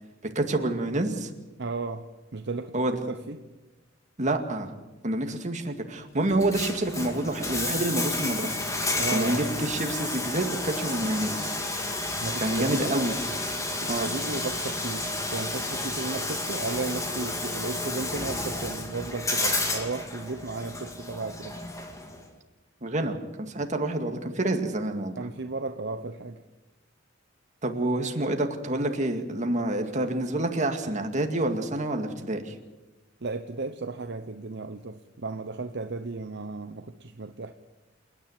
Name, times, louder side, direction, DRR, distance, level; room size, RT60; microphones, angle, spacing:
voice 1, 0.4-1.3 2.7-2.9 4.2-4.7 5.0-8.6 9.1-11.6 12.4-13.1 13.9-14.1 22.8-25.2 27.6-32.6, right 1 dB, 40° right, 5 dB, 2.2 m, -28 dB
voice 2, 1.6-2.1 2.3-3.4 9.0-9.7 12.2-13.0 13.8-21.6 25.2-26.4 33.2-37.5, right 3 dB, 60° right, 7 dB, 0.9 m, -34 dB
Bathtub (filling or washing), 6.3-22.2, left 2 dB, 15° left, 2.6 m, -31 dB
28.5 x 10.0 x 9.3 m, 1.1 s
head